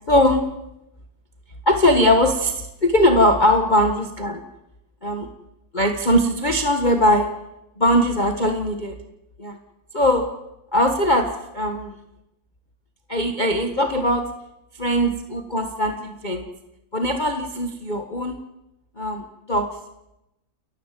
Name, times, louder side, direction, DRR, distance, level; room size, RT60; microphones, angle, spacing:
voice 1, 0.1-0.4 1.6-4.4 5.0-5.3 5.7-7.3 7.8-9.0 9.4-9.6 9.9-10.3 10.7-12.0 13.1-14.3 14.8-16.4 16.9-18.4 19.0-19.8, left 1 dB, 25° left, 5 dB, 1.4 m, -20 dB
29.5 x 14.5 x 7.6 m, 0.90 s
omnidirectional pair, 2.2 m